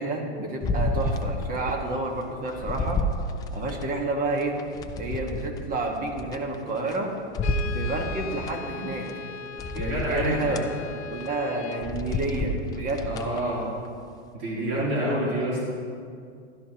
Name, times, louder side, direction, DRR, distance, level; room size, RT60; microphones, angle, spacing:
voice 1, 0.0-3.1 3.5-4.6 5.0-7.1 7.6-9.1 9.7-10.6 10.9-13.1 14.5-15.5, right 2 dB, 25° right, 2 dB, 1.6 m, -30 dB
sound 1, 0.6-1.8 2.2-3.9 4.4-7.0 7.3-8.5 9.1-9.2 9.6-10.7 11.1-11.3 11.7-13.4 13.9-14.0, left 2 dB, 10° left, 0.3 m, -30 dB
Brass instrument, 7.4-12.0, left 6 dB, 75° left, 0.9 m, -38 dB
voice 2, 9.8-10.6 13.1-13.7 14.3-15.7, right 1 dB, 50° right, -6 dB, 3.3 m, -28 dB
15.5 x 12.5 x 3.0 m, 2.3 s
hypercardioid pair, 135°, 34 cm